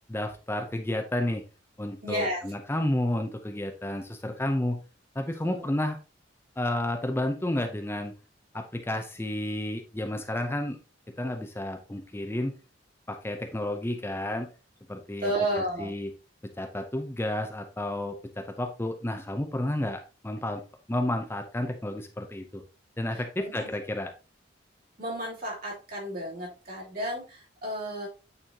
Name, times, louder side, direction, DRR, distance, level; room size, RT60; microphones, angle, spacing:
voice 1, 0.1-1.4 1.8-4.8 5.1-6.0 6.6-8.1 8.5-10.8 11.2-12.5 13.1-14.5 14.9-15.3 15.8-16.1 16.6-20.6 20.9-22.6 23.0-24.1, left 1 dB, 15° left, 5 dB, 0.6 m, -31 dB
voice 2, 2.0-2.4 5.4-5.6 15.2-15.9 23.1-23.7 25.0-28.1, right 1 dB, 55° right, -4 dB, 3.0 m, -32 dB
9.0 x 4.2 x 2.8 m, 0.33 s
head